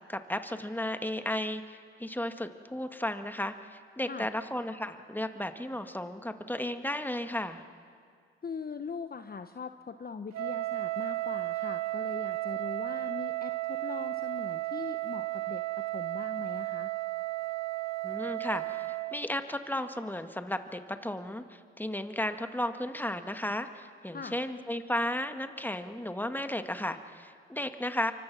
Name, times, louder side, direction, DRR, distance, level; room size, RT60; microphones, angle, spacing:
voice 1, 0.1-7.6 18.0-28.1, left 1 dB, 5° left, 8 dB, 1.9 m, -34 dB
voice 2, 8.4-16.9 24.1-24.4, left 5 dB, 30° left, 9 dB, 1.0 m, -41 dB
Wind instrument woodwind instrument, 10.3-19.2, right 20 dB, 60° right, 0.8 m, -34 dB
27.5 x 24.0 x 6.2 m, 2.2 s
hypercardioid pair, 40°, 30 cm